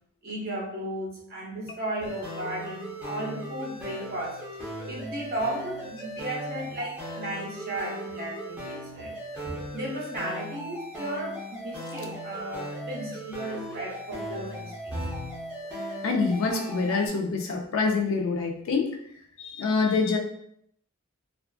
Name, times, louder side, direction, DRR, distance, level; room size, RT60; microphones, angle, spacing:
voice 1, 0.2-4.4 4.9-9.1 9.4-15.3, right 1 dB, 45° right, -3 dB, 0.7 m, -35 dB
sound 1, 2.0-17.1, equal, 5° right, 0.6 m, -38 dB
voice 2, 16.0-19.0 19.4-20.2, left 4 dB, 65° left, 3 dB, 0.4 m, -26 dB
2.4 x 2.3 x 2.3 m, 0.72 s
head